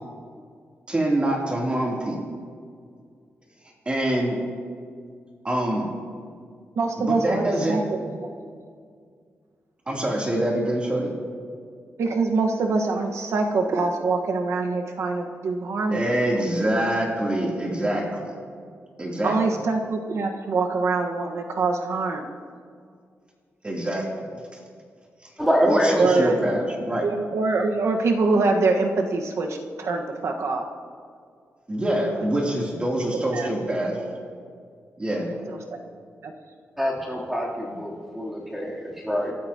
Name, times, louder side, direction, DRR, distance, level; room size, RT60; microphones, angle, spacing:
voice 1, 0.9-2.2 3.8-4.4 5.4-5.9 7.0-7.8 9.9-11.1 15.9-18.3 19.0-19.4 23.6-24.3 25.2-25.3 25.6-27.1 31.7-34.0 35.0-35.3, right 1 dB, 20° right, -2 dB, 3.1 m, -25 dB
voice 2, 6.7-7.8 8.2-8.3 12.0-16.4 19.2-22.3 26.0-26.4 27.0-30.6 33.3-33.5 35.5-35.6 36.2-36.3, right 3 dB, 70° right, 2 dB, 1.5 m, -24 dB
voice 3, 25.4-26.1 36.8-39.3, equal, 5° right, -5 dB, 3.3 m, -25 dB
28.0 x 13.0 x 3.0 m, 2.1 s
wide cardioid pair, 125°, 5 cm